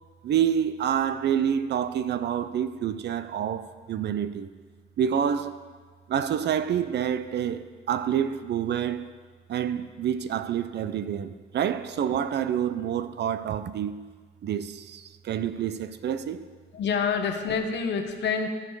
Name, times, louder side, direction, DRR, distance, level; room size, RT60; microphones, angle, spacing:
voice 1, 0.2-4.5 5.0-5.6 6.1-9.1 9.5-14.1 14.4-16.4, right 9 dB, 60° right, 0.6 m, -28 dB
voice 2, 16.7-18.5, left 6 dB, 65° left, 1.1 m, -27 dB
14.5 x 5.2 x 4.8 m
cardioid pair, 90°, 20 cm